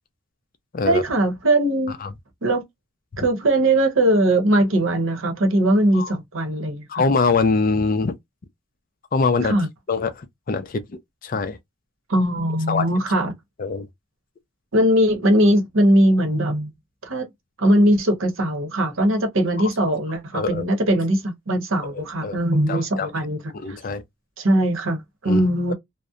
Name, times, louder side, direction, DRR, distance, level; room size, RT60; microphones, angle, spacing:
voice 1, 0.8-1.9 2.4-2.6 3.2-6.9 9.4-9.7 12.1-13.3 14.7-16.7 17.0-17.3 17.6-23.4 23.7-23.8 24.4-25.7, right 1 dB, 70° right, 0.8 m, -20 dB
voice 2, 6.9-8.2 9.1-9.5 9.9-10.8 11.2-11.6 12.7-12.8 13.6-13.9 19.6-19.7 20.3-20.6 21.9-22.4 22.7-23.1 23.5-24.0 25.3-25.4, left 4 dB, 40° left, 0.4 m, -23 dB
2.7 x 2.0 x 2.3 m
head